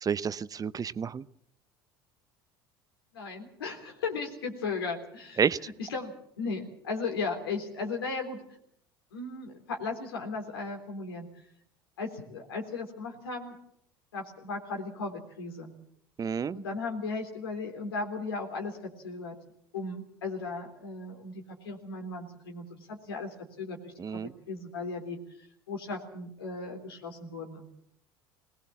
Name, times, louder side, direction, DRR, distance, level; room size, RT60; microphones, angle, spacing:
voice 1, 0.0-1.3 5.4-5.6 16.2-16.6 24.0-24.3, right 6 dB, 30° right, 16 dB, 0.8 m, -29 dB
voice 2, 3.1-5.4 5.8-8.4 9.1-11.3 12.0-13.6 14.1-15.7 16.5-19.4 19.7-27.7, left 4 dB, 90° left, 2 dB, 3.6 m, -36 dB
21.0 x 19.0 x 7.3 m, 0.70 s
hypercardioid pair, 80°, 12 cm